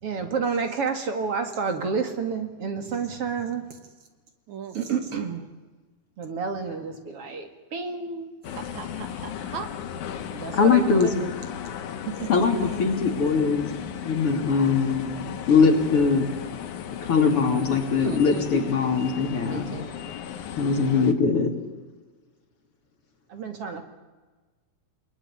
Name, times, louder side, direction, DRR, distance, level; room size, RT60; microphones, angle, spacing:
voice 1, 0.0-3.8 4.7-5.4 6.2-8.3 10.3-11.1 12.1-12.5 20.7-21.0 23.3-23.8, right 5 dB, 50° right, 7 dB, 2.9 m, -30 dB
voice 2, 4.5-4.8 8.5-9.8 18.0-18.4 19.5-20.0, right 7 dB, 70° right, 9 dB, 2.9 m, -38 dB
sound 1, 8.4-21.1, left 9 dB, 80° left, 2.9 m, -36 dB
voice 3, 10.5-11.1 12.3-13.7 14.0-15.1 15.5-16.3 17.1-19.7 20.6-21.5, left 5 dB, 45° left, 5 dB, 3.5 m, -21 dB
29.0 x 19.5 x 10.0 m, 1.3 s
omnidirectional pair, 3.5 m